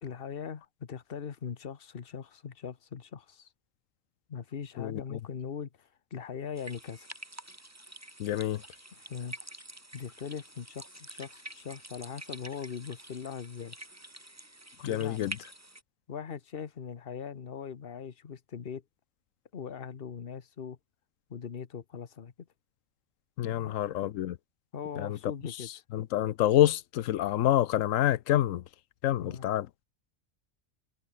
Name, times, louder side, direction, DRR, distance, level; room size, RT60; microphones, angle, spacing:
voice 1, 0.0-3.5 4.3-7.1 9.0-9.4 9.9-13.8 14.8-15.3 16.1-18.8 19.5-20.8 21.3-22.5 23.4-23.7 24.7-25.7 29.2-29.5, left 7 dB, 50° left, 1.3 m, -40 dB
sound 1, 6.6-15.8, right 1 dB, 10° right, 1.7 m, -47 dB
voice 2, 8.2-8.6 14.8-15.3 23.4-24.4 25.0-25.2 25.9-28.6 29.0-29.7, left 12 dB, 90° left, 1.1 m, -27 dB
omnidirectional pair, 1.3 m